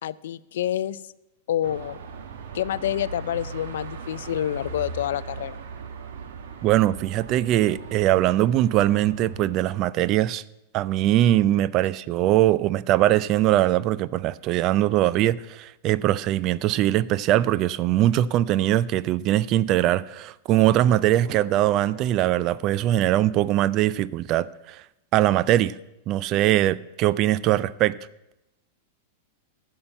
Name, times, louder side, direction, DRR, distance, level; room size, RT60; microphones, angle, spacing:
voice 1, 0.0-1.0 1.5-2.0 2.5-5.6, left 11 dB, 80° left, 0.4 m, -28 dB
Car passing by / Traffic noise roadway noise / Engine, 1.6-9.8, right 5 dB, 80° right, 1.4 m, -38 dB
voice 2, 6.6-10.4 10.7-24.8 25.1-25.7 26.1-28.0, right 14 dB, 35° right, 0.3 m, -21 dB
sound 1, 20.5-23.3, left 3 dB, 10° left, 1.9 m, -47 dB
11.0 x 5.7 x 8.9 m
supercardioid pair, 155°, 0 cm